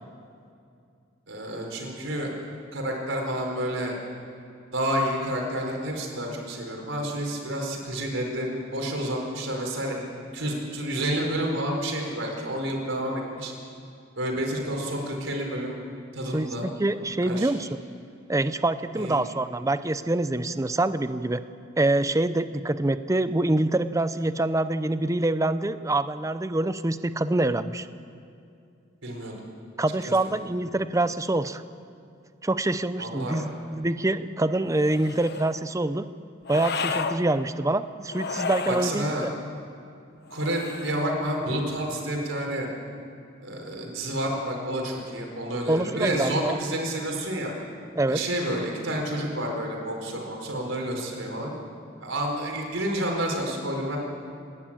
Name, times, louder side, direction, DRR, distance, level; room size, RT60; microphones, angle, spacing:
voice 1, 1.3-2.3 2.7-3.9 4.7-10.0 10.3-13.5 14.2-15.8 16.1-16.7 17.2-17.5 18.9-19.2 29.0-29.4 30.0-30.3 33.0-33.5 38.7-39.3 40.3-42.7 43.4-47.5 48.1-51.5 52.0-54.0, right 1 dB, 75° right, 0 dB, 4.6 m, -29 dB
voice 2, 16.3-17.8 18.3-21.4 21.8-27.9 29.8-31.6 32.4-36.1 36.5-39.3 45.7-46.6 48.0-48.2, right 2 dB, 15° right, 13 dB, 0.6 m, -25 dB
sound 1, 34.7-35.6 36.5-37.2 38.1-39.0 40.3-41.1, left 5 dB, 55° left, 1.0 m, -32 dB
27.5 x 12.0 x 8.9 m, 2.4 s
head